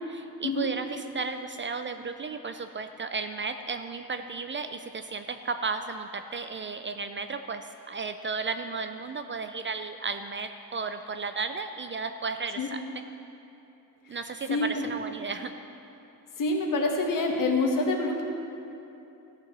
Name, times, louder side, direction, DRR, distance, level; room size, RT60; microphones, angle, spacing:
voice 1, 0.1-12.8 14.1-15.5, right 4 dB, 30° right, 8 dB, 0.4 m, -34 dB
voice 2, 14.5-14.9 16.4-18.2, left 2 dB, 55° left, 2 dB, 1.6 m, -26 dB
13.5 x 6.8 x 6.1 m, 3.0 s
cardioid pair, 115°, 38 cm